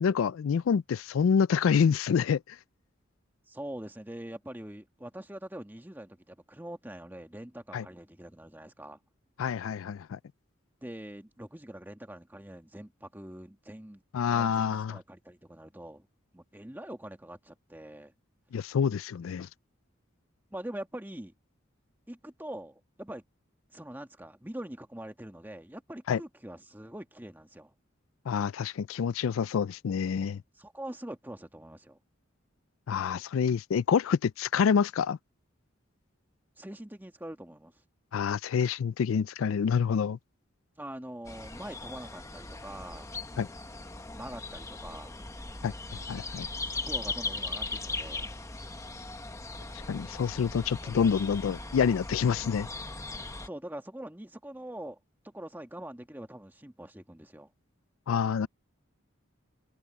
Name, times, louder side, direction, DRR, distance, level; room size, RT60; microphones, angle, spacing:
voice 1, 0.0-2.6 7.7-7.8 9.4-10.2 14.1-15.0 18.5-19.5 26.1-26.2 28.3-30.4 32.9-35.2 38.1-40.2 43.4-43.5 45.6-45.7 46.1-46.5 49.9-52.7 58.1-58.5, left 6 dB, 85° left, 0.4 m, -27 dB
voice 2, 3.5-9.0 10.8-16.1 16.3-18.1 20.5-21.3 22.1-23.2 23.7-27.7 30.6-32.0 36.6-37.7 40.8-43.1 44.0-45.3 46.6-48.3 50.8-51.1 53.4-55.0 55.2-57.5, right 1 dB, 10° right, 1.7 m, -44 dB
sound 1, 41.2-53.5, left 3 dB, 15° left, 1.0 m, -39 dB
head